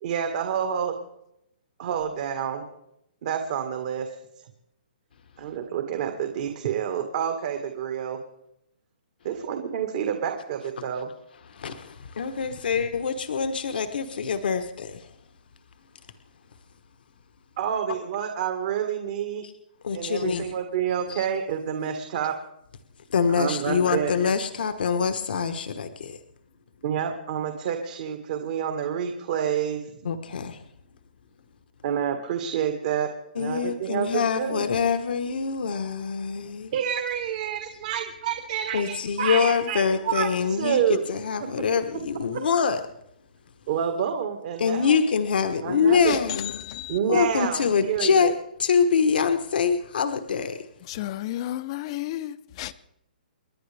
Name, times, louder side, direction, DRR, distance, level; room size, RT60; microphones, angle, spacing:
voice 1, 0.0-0.9 1.8-2.6 3.2-4.1 5.4-8.2 9.2-11.1 17.6-19.4 19.9-22.3 23.3-24.1 26.8-29.8 31.8-33.1 33.4-34.6 36.7-40.3 40.6-41.1 42.3-42.4 43.7-45.0 45.6-46.2 46.9-48.3, right 8 dB, 45° right, 1.7 m, -28 dB
voice 2, 11.5-15.1 19.4-19.5 19.8-20.5 21.1-21.2 23.1-26.2 30.0-30.6 33.3-36.7 38.7-42.8 44.6-46.6 47.1-50.6, left 6 dB, 70° left, 1.2 m, -25 dB
voice 3, 46.1-47.0 50.8-52.7, left 14 dB, 35° left, 0.7 m, -33 dB
29.5 x 11.0 x 3.4 m
hypercardioid pair, 160°, 5 cm